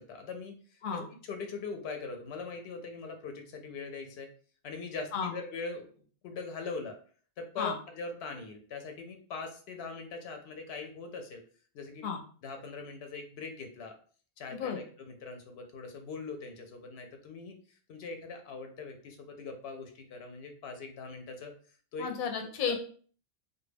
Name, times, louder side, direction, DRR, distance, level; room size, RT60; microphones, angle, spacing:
voice 1, 0.0-4.3 4.6-7.0 7.4-11.4 11.7-12.0 12.4-13.9 14.4-17.6 17.9-21.5 21.9-22.1 22.7-22.8, left 4 dB, 90° left, 4 dB, 0.8 m, -41 dB
voice 2, 14.5-14.8 22.0-22.8, left 6 dB, 60° left, 3 dB, 0.7 m, -32 dB
2.2 x 2.2 x 3.3 m, 0.43 s
omnidirectional pair, 1.0 m